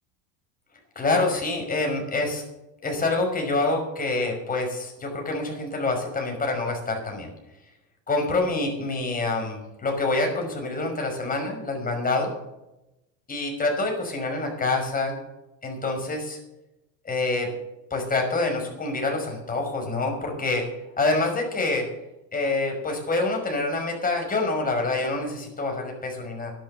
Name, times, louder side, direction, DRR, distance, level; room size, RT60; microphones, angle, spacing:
voice 1, 1.0-2.4 2.8-7.3 8.1-12.3 13.3-15.2 15.6-16.4 17.0-17.5 17.9-20.6 21.0-21.9 22.3-26.5, left 3 dB, 20° left, 2 dB, 5.7 m, -26 dB
12.0 x 11.5 x 6.7 m, 0.93 s
supercardioid pair, 105°, 40 cm